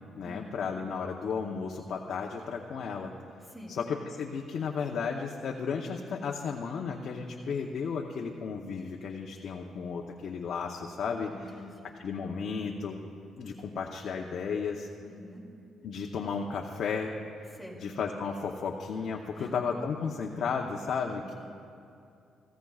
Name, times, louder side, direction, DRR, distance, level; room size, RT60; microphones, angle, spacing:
voice 1, 0.2-3.1 3.7-11.3 12.0-13.0 13.4-14.9 15.8-17.1 17.4-21.3, left 5 dB, 60° left, 0 dB, 0.8 m, -34 dB
voice 2, 3.5-3.8 11.3-11.9 15.0-15.4 17.5-17.8 19.3-19.5 21.0-21.3, left 1 dB, 5° right, -2 dB, 3.0 m, -47 dB
17.5 x 15.5 x 2.4 m, 2.6 s
cardioid pair, 90°, 0 cm